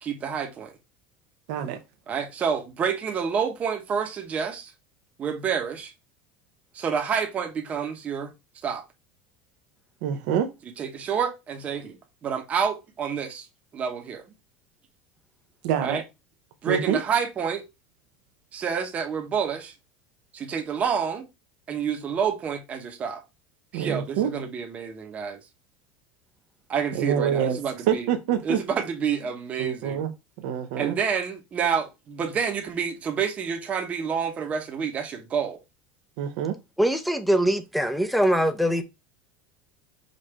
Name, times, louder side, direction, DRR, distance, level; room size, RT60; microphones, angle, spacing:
voice 1, 0.0-0.7 2.1-4.7 5.2-5.9 6.7-8.3 8.6-8.8 10.8-12.0 12.2-13.5 13.7-14.2 15.8-16.0 16.6-17.6 18.5-19.7 20.3-21.3 21.7-23.2 23.7-25.4 26.7-28.1 28.4-30.0 30.8-35.6, right 7 dB, 30° right, 0.9 m, -28 dB
voice 2, 1.5-1.8 10.0-10.5 15.6-16.0 16.6-17.0 23.7-24.3 26.9-27.6 27.9-28.6 29.6-30.1 30.4-31.0 36.2-36.5, right 9 dB, 70° right, 0.7 m, -26 dB
voice 3, 36.8-38.8, equal, ahead, 0.6 m, -22 dB
5.2 x 2.6 x 3.3 m
supercardioid pair, 125°, 5 cm